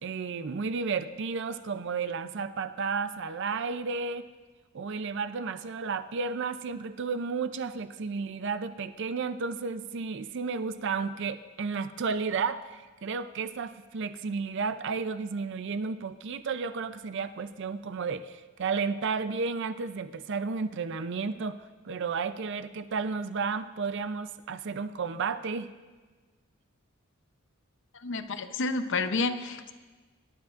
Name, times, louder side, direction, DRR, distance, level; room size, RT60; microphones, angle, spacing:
voice 1, 0.0-4.3 4.7-21.6 21.8-25.7, right 5 dB, 55° right, 11 dB, 0.5 m, -32 dB
voice 2, 28.0-29.7, left 3 dB, 60° left, 9 dB, 0.7 m, -30 dB
25.0 x 12.0 x 2.5 m, 1.3 s
head